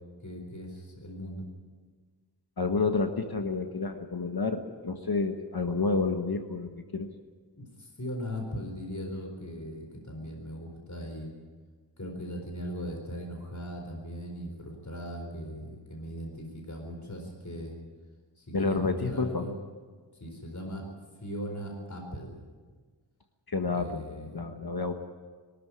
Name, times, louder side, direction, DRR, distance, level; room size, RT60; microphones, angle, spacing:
voice 1, 0.2-1.5 7.5-11.3 12.0-17.8 18.4-19.5 20.2-20.8 21.2-22.4 23.7-24.4, equal, 40° left, 2 dB, 4.2 m, -39 dB
voice 2, 2.6-7.1 18.5-19.5 23.5-24.0 24.3-24.9, left 4 dB, 55° left, 6 dB, 1.4 m, -29 dB
22.5 x 13.5 x 9.7 m, 1.5 s
wide cardioid pair, 65°, 44 cm